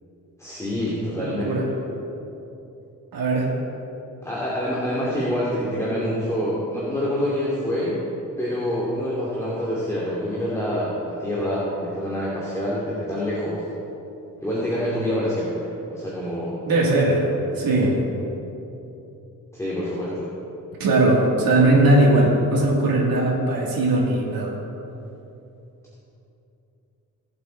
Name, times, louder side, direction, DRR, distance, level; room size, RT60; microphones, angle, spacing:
voice 1, 0.4-1.5 4.2-8.0 8.4-13.6 14.4-16.6 19.5-20.3, equal, 10° left, -7 dB, 2.7 m, -26 dB
voice 2, 1.1-1.7 3.1-3.5 16.7-17.3 17.5-18.0 20.8-24.6, right 2 dB, 80° right, -4 dB, 2.7 m, -19 dB
20.0 x 7.8 x 4.0 m, 2.9 s
cardioid pair, 100°, 34 cm